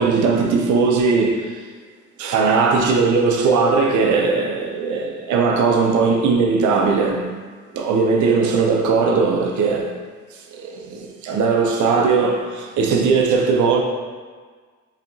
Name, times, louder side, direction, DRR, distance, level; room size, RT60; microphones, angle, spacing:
voice 1, 0.0-1.6 2.2-7.3 7.7-9.9 10.3-13.8, right 4 dB, 75° right, 0.6 m, -19 dB
6.7 x 2.8 x 2.7 m
cardioid pair, 90°, 30 cm